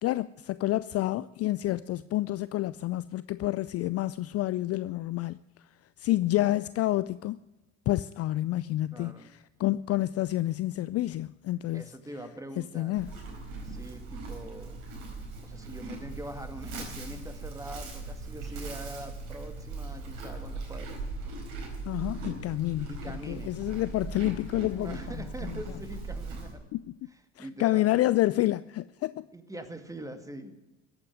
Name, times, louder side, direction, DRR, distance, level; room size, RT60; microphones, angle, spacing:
voice 1, 0.0-5.4 6.0-7.4 7.9-11.9 12.6-13.1 21.9-23.0 23.3-25.6 26.7-26.8 27.4-29.3, left 16 dB, 40° left, 0.4 m, -29 dB
voice 2, 8.9-9.3 11.7-13.0 13.6-14.8 15.4-21.0 22.9-23.5 24.7-26.6 27.4-27.9 29.3-30.5, right 1 dB, 10° right, 2.2 m, -43 dB
Livestock farm animals working animals, 12.9-26.5, right 3 dB, 65° right, 4.5 m, -39 dB
14.5 x 8.9 x 9.3 m
hypercardioid pair, 65°, 37 cm